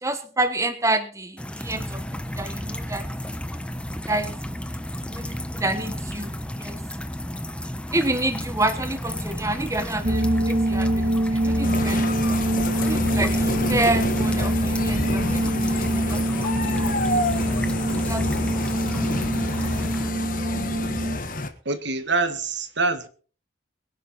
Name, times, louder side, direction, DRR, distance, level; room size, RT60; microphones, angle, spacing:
voice 1, 0.0-3.0 4.1-4.7 5.1-6.8 7.9-12.0 12.8-17.3 18.0-18.5, right 2 dB, 15° right, 8 dB, 1.3 m, -29 dB
sound 1, 1.4-20.1, equal, 5° left, 0.8 m, -32 dB
sound 2, 10.0-21.2, right 1 dB, 45° right, 1.9 m, -25 dB
sound 3, 11.6-21.5, left 2 dB, 45° left, 1.7 m, -29 dB
voice 2, 21.6-23.1, right 3 dB, 60° right, 10 dB, 1.7 m, -25 dB
22.5 x 10.5 x 4.2 m, 0.40 s
head